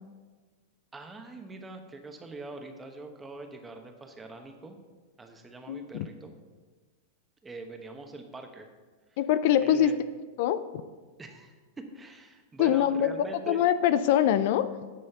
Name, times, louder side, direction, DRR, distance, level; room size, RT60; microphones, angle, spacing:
voice 1, 0.9-4.8 5.2-6.3 7.4-8.7 9.1-9.2 9.6-10.0 11.2-13.6, right 2 dB, 15° right, 5 dB, 1.0 m, -43 dB
voice 2, 5.7-6.1 9.2-9.9 10.4-10.6 12.6-14.7, left 10 dB, 60° left, 13 dB, 0.4 m, -24 dB
9.9 x 4.3 x 5.5 m, 1.4 s
hypercardioid pair, 125°, 0 cm